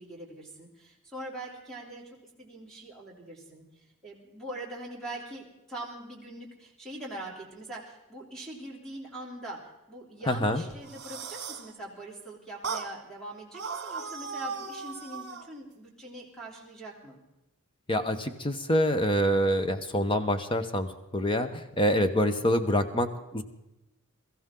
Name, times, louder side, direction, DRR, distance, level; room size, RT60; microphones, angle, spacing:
voice 1, 0.0-17.2, right 1 dB, ahead, -2 dB, 3.3 m, -42 dB
voice 2, 10.3-10.6 17.9-20.9 21.1-23.4, equal, 25° left, 9 dB, 1.0 m, -26 dB
sound 1, 10.7-11.7 12.6-12.9 13.5-15.5, right 5 dB, 50° right, 1.6 m, -37 dB
23.0 x 14.5 x 3.8 m, 0.96 s
head